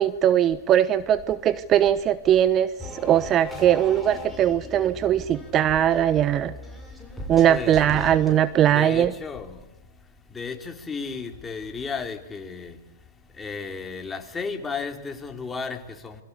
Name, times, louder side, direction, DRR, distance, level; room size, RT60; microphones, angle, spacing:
voice 1, 0.0-6.5 7.3-9.1, right 10 dB, 30° right, 15 dB, 1.0 m, -20 dB
sound 1, 2.8-8.3, left 1 dB, 5° right, 7.2 m, -38 dB
voice 2, 7.5-8.2 8.7-9.6 10.3-12.8 13.4-16.2, left 5 dB, 15° left, 6 dB, 3.4 m, -34 dB
28.0 x 22.5 x 8.3 m, 0.99 s
hypercardioid pair, 125°, 0 cm